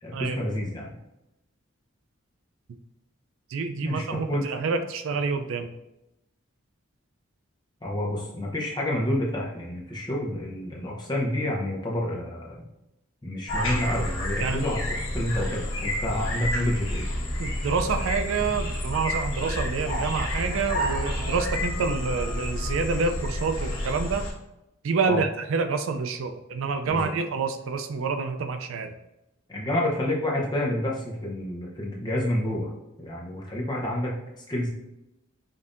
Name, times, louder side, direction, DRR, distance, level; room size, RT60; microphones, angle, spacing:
voice 1, 0.0-1.0 3.8-4.5 7.8-12.6 13.2-17.1 25.1-25.2 26.9-27.1 29.5-32.7 33.0-34.7, left 1 dB, 20° left, -3 dB, 0.7 m, -29 dB
voice 2, 3.5-5.7 14.4-14.7 17.4-24.3 24.8-29.0, right 4 dB, 75° right, 7 dB, 0.4 m, -28 dB
sound 1, 13.5-24.3, equal, 70° left, 1.5 m, -29 dB
5.2 x 2.7 x 2.5 m, 0.91 s
head